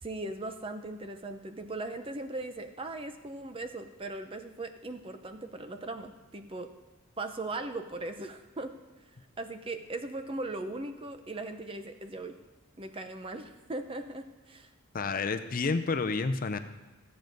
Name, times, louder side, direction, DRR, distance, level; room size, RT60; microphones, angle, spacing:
voice 1, 0.0-6.7 7.2-8.7 9.4-12.4 12.8-14.7, right 2 dB, 25° right, 8 dB, 0.7 m, -39 dB
voice 2, 14.9-16.6, left 4 dB, 40° left, 9 dB, 0.5 m, -29 dB
14.0 x 7.8 x 5.2 m, 1.2 s
head